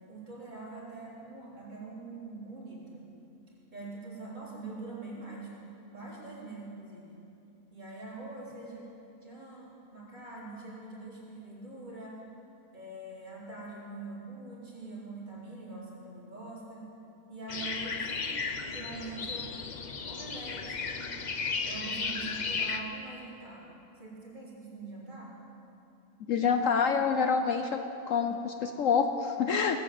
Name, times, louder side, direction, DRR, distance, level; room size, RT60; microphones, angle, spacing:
voice 1, 0.1-3.1 3.7-5.5 5.9-7.1 7.7-8.8 9.2-12.2 12.7-16.9 17.3-18.4 18.7-19.5 20.0-21.1 21.6-23.7 24.0-25.4, right 2 dB, 30° right, -7 dB, 4.1 m, -44 dB
sound 1, 17.5-22.8, left 4 dB, 40° left, 0.7 m, -34 dB
voice 2, 26.3-27.8 28.1-29.8, left 6 dB, 65° left, 6 dB, 1.0 m, -27 dB
19.0 x 8.6 x 7.6 m, 2.8 s
omnidirectional pair, 1.6 m